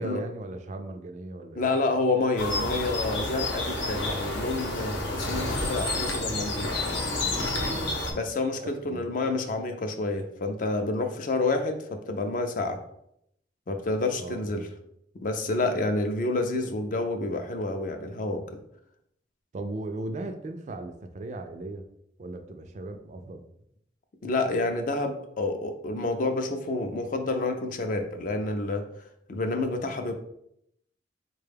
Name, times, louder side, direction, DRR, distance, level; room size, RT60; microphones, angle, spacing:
voice 1, 0.0-1.7 7.6-8.0 8.6-9.1 14.2-14.6 19.5-21.9 22.2-23.4, right 2 dB, 40° right, 6 dB, 0.3 m, -37 dB
voice 2, 1.5-6.7 8.1-12.8 13.7-14.7 15.2-18.6 24.2-28.8 29.3-30.1, left 2 dB, 45° left, 6 dB, 0.4 m, -29 dB
sound 1, 2.4-8.1, left 2 dB, 85° left, 0.7 m, -29 dB
4.2 x 2.2 x 3.3 m, 0.76 s
head